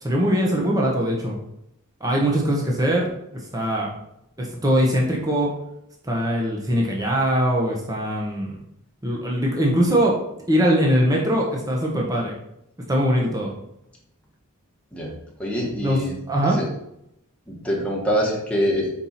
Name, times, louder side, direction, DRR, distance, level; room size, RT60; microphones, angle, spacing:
voice 1, 0.0-1.4 2.0-3.1 3.5-3.9 4.4-5.5 6.0-8.6 9.0-10.2 10.5-12.4 12.9-13.5 15.8-16.0 16.3-16.6, equal, 15° right, -2 dB, 0.9 m, -21 dB
voice 2, 15.4-16.1 16.4-16.6 17.5-18.9, equal, 5° left, -4 dB, 1.5 m, -24 dB
5.8 x 4.5 x 4.1 m, 0.79 s
head